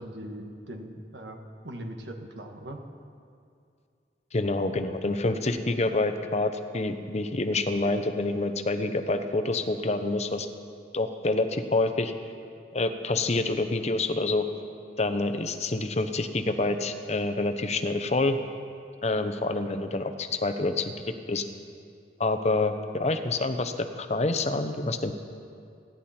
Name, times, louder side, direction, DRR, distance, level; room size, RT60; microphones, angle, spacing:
voice 1, 0.0-2.8, right 1 dB, 80° right, 4 dB, 1.6 m, -40 dB
voice 2, 4.3-10.5 10.9-12.1 12.7-14.5 15.0-18.4 19.0-20.9 21.3-21.4 22.2-25.1, left 2 dB, 40° left, 8 dB, 0.8 m, -27 dB
27.5 x 10.5 x 4.4 m, 2.4 s
head